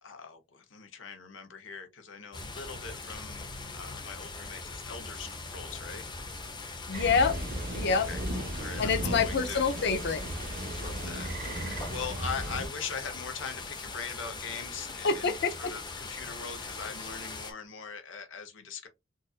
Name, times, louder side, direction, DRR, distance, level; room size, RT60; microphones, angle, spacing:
voice 1, 0.0-6.0 7.9-9.6 10.7-18.9, left 5 dB, 85° left, 0.9 m, -41 dB
sound 1, 2.3-17.5, left 3 dB, 25° left, 0.7 m, -41 dB
voice 2, 6.9-7.4 7.7-8.1 8.8-10.2 15.0-15.7, left 5 dB, 60° left, 0.6 m, -26 dB
sound 2, 6.9-12.7, right 1 dB, 50° right, 0.9 m, -36 dB
3.9 x 2.5 x 2.4 m
head